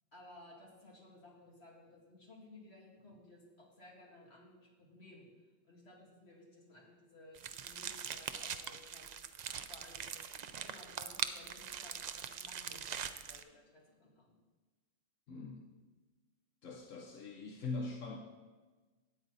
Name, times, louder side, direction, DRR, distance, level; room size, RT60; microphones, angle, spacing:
voice 1, 0.1-5.3 5.7-9.1 9.5-14.4, left 2 dB, 55° left, -3 dB, 2.7 m, -58 dB
sound 1, 7.3-13.4, right 7 dB, 75° right, 0.3 m, -42 dB
voice 2, 15.3-15.7 16.6-18.2, left 3 dB, 80° left, 2 dB, 1.3 m, -42 dB
13.0 x 9.0 x 4.1 m, 1.3 s
omnidirectional pair, 1.3 m